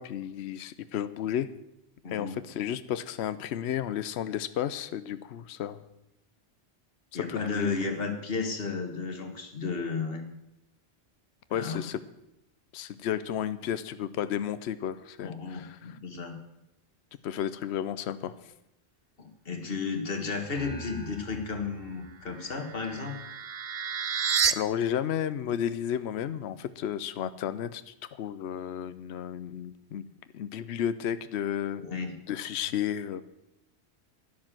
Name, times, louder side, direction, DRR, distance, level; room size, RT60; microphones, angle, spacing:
voice 1, 0.0-1.5 2.1-5.8 7.1-7.7 11.5-12.0 12.7-16.0 17.2-18.3 24.5-30.0 30.3-31.8 32.3-33.2, left 9 dB, 75° left, 13 dB, 0.9 m, -32 dB
voice 2, 2.0-2.4 7.1-10.3 11.5-11.8 15.2-16.4 19.2-23.2 31.8-32.1, left 4 dB, 60° left, 4 dB, 1.9 m, -33 dB
sound 1, 20.5-23.2, left 3 dB, 35° left, 4.5 m, -46 dB
sound 2, 22.3-24.5, right 7 dB, 50° right, 0.8 m, -30 dB
12.0 x 10.5 x 7.6 m, 0.87 s
omnidirectional pair, 1.1 m